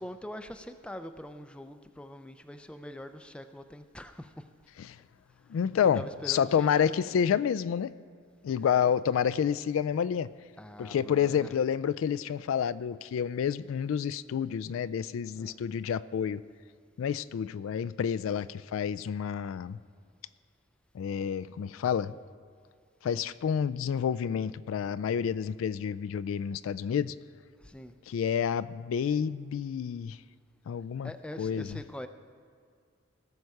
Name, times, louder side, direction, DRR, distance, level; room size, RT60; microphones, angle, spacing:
voice 1, 0.0-4.5 5.8-7.2 8.6-8.7 10.6-11.6 15.3-15.6 23.0-23.2 27.6-28.0 31.0-32.1, left 1 dB, 5° left, 8 dB, 0.4 m, -44 dB
voice 2, 5.5-6.0 6.3-7.9 8.4-10.3 10.8-16.4 17.0-19.8 20.9-22.2 23.0-27.1 28.1-30.2 30.7-31.1 31.4-31.8, left 8 dB, 75° left, 17 dB, 0.3 m, -29 dB
17.5 x 6.5 x 4.7 m, 2.2 s
head